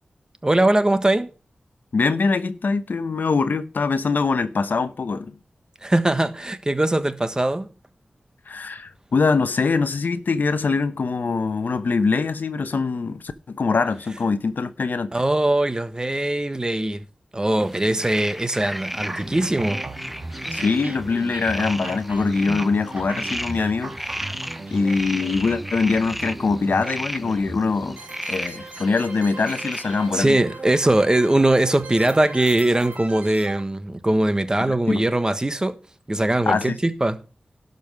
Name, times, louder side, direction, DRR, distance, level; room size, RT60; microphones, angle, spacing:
voice 1, 0.4-1.3 5.8-7.7 15.1-17.0 17.3-19.9 20.4-20.6 30.1-35.7 36.1-37.2, right 1 dB, 25° right, 1.2 m, -21 dB
voice 2, 1.9-5.4 8.5-15.1 20.5-24.1 24.7-28.0 28.3-30.4 34.9-35.0 36.5-36.7, left 4 dB, 75° left, 0.8 m, -23 dB
sound 1, 17.6-30.3, equal, 5° right, 0.7 m, -34 dB
sound 2, 18.9-33.6, right 2 dB, 55° right, 1.8 m, -37 dB
12.0 x 5.4 x 6.1 m
wide cardioid pair, 70°, 3 cm